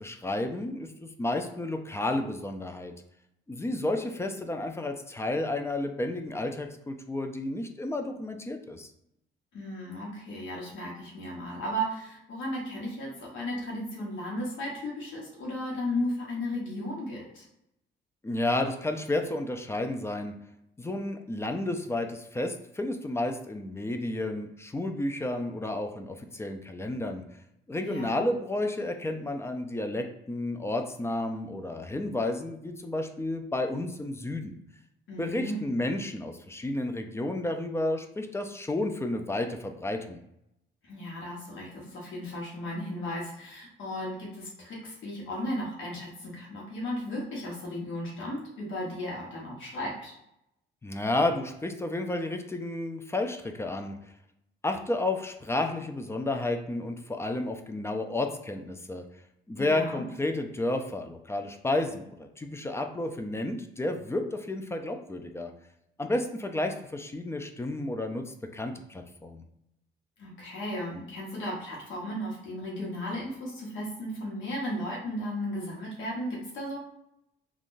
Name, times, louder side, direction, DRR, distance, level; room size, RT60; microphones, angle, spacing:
voice 1, 0.0-2.9 3.5-8.9 18.2-20.3 20.8-27.2 27.7-34.5 35.2-40.2 50.8-54.0 54.6-59.0 59.5-65.5 66.0-69.4, left 2 dB, 15° left, 5 dB, 0.3 m, -31 dB
voice 2, 9.5-17.4 27.8-28.3 35.1-35.6 40.8-50.1 59.5-60.1 70.2-76.8, left 1 dB, 75° left, -4 dB, 1.0 m, -35 dB
3.6 x 2.3 x 2.5 m, 0.81 s
cardioid pair, 90°, 20 cm